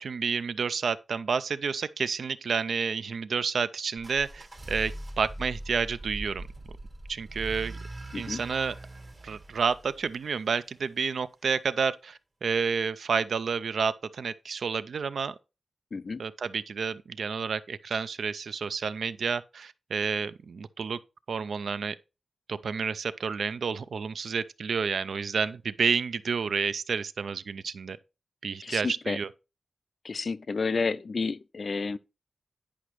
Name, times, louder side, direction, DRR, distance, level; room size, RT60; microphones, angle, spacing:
voice 1, 0.0-6.4 7.1-7.8 8.1-8.7 9.2-15.3 16.2-21.0 21.3-21.9 22.5-28.0 28.4-29.3, right 5 dB, 85° right, 0.4 m, -30 dB
sound 1, 4.0-10.9, right 1 dB, 40° right, 1.5 m, -41 dB
voice 2, 8.1-8.4 15.9-16.2 28.6-29.2 30.0-32.0, left 4 dB, 50° left, 0.3 m, -31 dB
10.0 x 5.0 x 3.0 m
wide cardioid pair, 135°, 0 cm